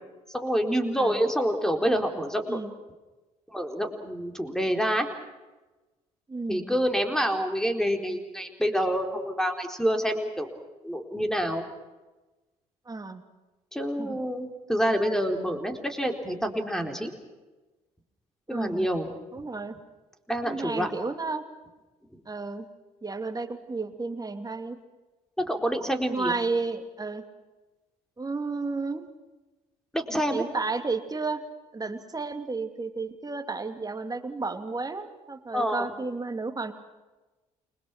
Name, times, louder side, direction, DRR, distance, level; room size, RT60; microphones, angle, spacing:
voice 1, 0.3-2.6 3.5-5.1 6.5-10.5 10.8-11.6 13.7-17.1 18.5-19.1 20.3-20.9 25.4-26.4 29.9-30.4 35.5-35.9, equal, 5° left, 5 dB, 4.2 m, -27 dB
voice 2, 6.3-6.8 12.9-13.2 14.0-14.2 18.5-18.9 19.3-19.8 20.4-21.4 22.3-22.7 23.0-24.8 26.1-27.2 28.2-29.0 30.3-31.4 31.7-36.7, right 3 dB, 20° right, 7 dB, 2.7 m, -32 dB
29.5 x 22.5 x 6.1 m, 1.1 s
figure-of-eight pair, 50°, 19 cm